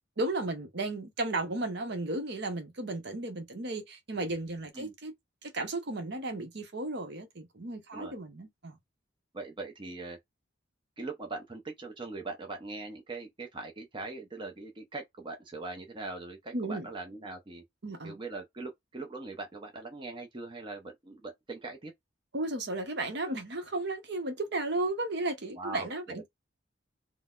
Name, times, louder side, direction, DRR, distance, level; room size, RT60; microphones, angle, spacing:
voice 1, 0.2-5.1 5.4-8.8 16.5-16.9 17.8-18.2 22.3-26.3, right 2 dB, 55° right, 0.8 m, -34 dB
voice 2, 9.3-10.2 11.0-17.6 18.0-21.9 25.6-26.3, right 3 dB, 25° right, 0.6 m, -41 dB
3.8 x 2.1 x 2.4 m
head